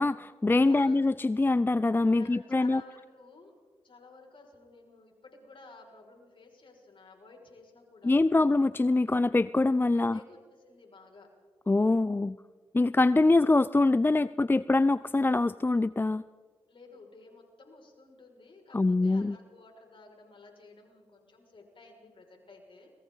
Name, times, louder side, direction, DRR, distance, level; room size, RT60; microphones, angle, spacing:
voice 1, 0.0-2.8 8.0-10.2 11.7-12.4 12.7-16.2 18.7-19.4, left 2 dB, 20° left, 17 dB, 0.5 m, -24 dB
voice 2, 0.6-1.0 2.1-3.5 3.8-8.2 9.9-11.3 16.7-22.9, left 3 dB, 55° left, 1 dB, 6.2 m, -53 dB
30.0 x 22.0 x 4.1 m, 1.5 s
supercardioid pair, 40°, 11 cm